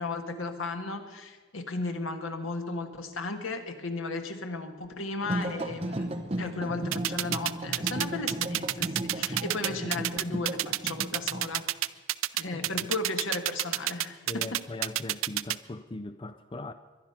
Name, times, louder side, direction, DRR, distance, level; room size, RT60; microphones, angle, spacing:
voice 1, 0.0-11.7 12.3-14.6, left 3 dB, 85° left, 1.5 m, -35 dB
sound 1, 5.2-11.5, right 1 dB, 30° right, 1.0 m, -35 dB
sound 2, 6.9-15.6, right 14 dB, 85° right, 0.5 m, -28 dB
voice 2, 12.5-12.9 14.3-16.7, left 2 dB, 25° left, 0.4 m, -40 dB
22.0 x 10.5 x 5.7 m
head